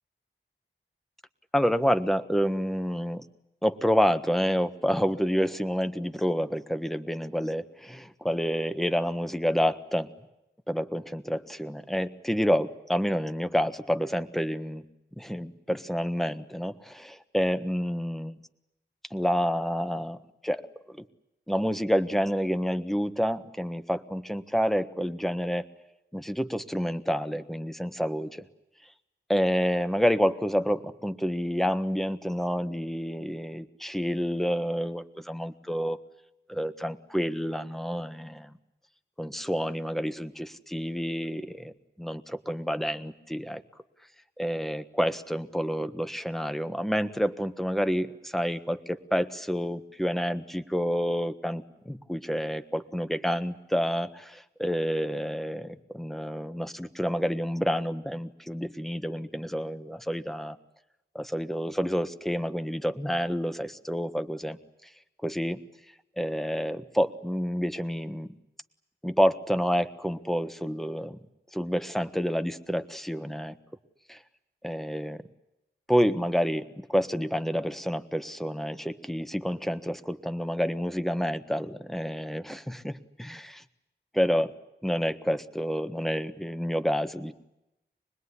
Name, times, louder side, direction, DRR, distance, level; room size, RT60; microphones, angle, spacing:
voice 1, 1.5-3.2 3.6-10.1 10.7-14.8 15.2-18.4 19.1-20.2 20.4-21.0 21.5-25.7 26.1-28.5 29.3-36.0 36.5-38.5 39.2-41.7 42.0-43.6 44.4-60.6 61.1-64.6 65.2-65.6 66.2-68.3 69.0-71.2 71.5-73.6 74.1-74.2 74.6-75.2 75.9-82.9 83.3-83.4 84.2-84.5 84.8-87.3, equal, ahead, 10 dB, 1.4 m, -28 dB
25.5 x 20.5 x 9.9 m, 0.91 s
wide cardioid pair, 50°, 20 cm